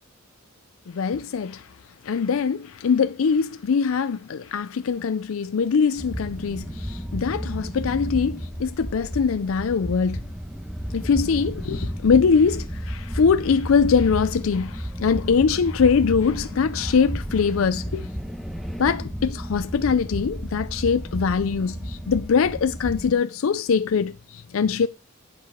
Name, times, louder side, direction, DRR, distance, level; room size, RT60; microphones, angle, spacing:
voice 1, 0.9-1.7 2.0-10.2 10.9-18.1 18.8-24.9, left 5 dB, 75° left, 0.4 m, -22 dB
sound 1, 6.0-23.1, equal, ahead, 1.1 m, -32 dB
11.0 x 4.8 x 5.0 m
head